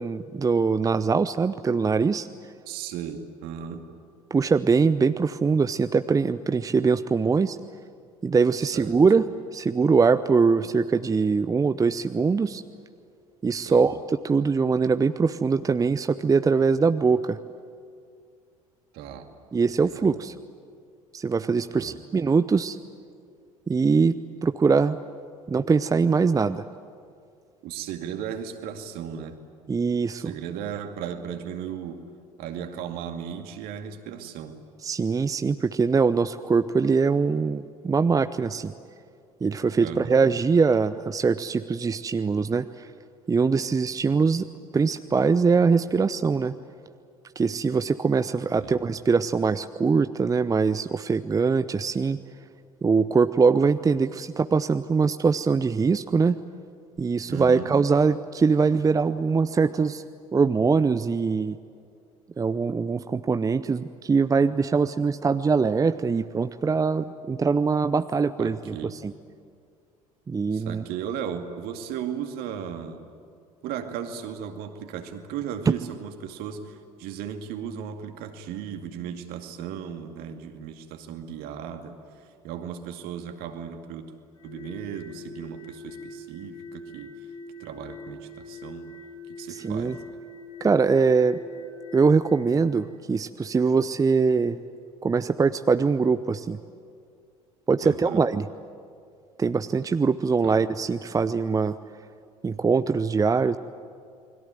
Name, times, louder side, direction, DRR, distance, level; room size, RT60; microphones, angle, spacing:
voice 1, 0.0-2.3 4.3-7.6 8.2-12.6 13.4-14.0 14.2-17.4 19.5-20.3 21.1-22.8 23.7-25.0 25.5-26.6 29.7-30.3 34.8-38.7 39.4-42.9 43.3-44.5 44.7-46.5 47.4-52.2 52.8-56.4 57.0-60.0 60.3-61.6 62.4-69.1 70.3-70.8 89.5-90.0 90.6-91.4 91.9-94.6 95.0-96.6 97.7-98.5 99.4-101.8 102.4-103.6, right 5 dB, 20° right, 12 dB, 0.7 m, -22 dB
voice 2, 2.7-3.9 8.6-9.0 13.7-13.8 18.9-19.3 19.8-20.1 21.7-22.0 27.6-29.4 30.2-32.0 32.4-34.6 39.8-40.2 48.6-48.8 57.3-57.7 68.4-69.0 70.5-73.0 73.6-84.1 84.4-87.1 87.6-88.9 89.3-90.0 97.8-98.2 100.4-100.6, right 8 dB, 55° right, 6 dB, 2.4 m, -36 dB
sound 1, 84.3-92.6, left 1 dB, 80° left, 7.0 m, -43 dB
29.5 x 21.5 x 9.2 m, 2.3 s
figure-of-eight pair, 65°, 18 cm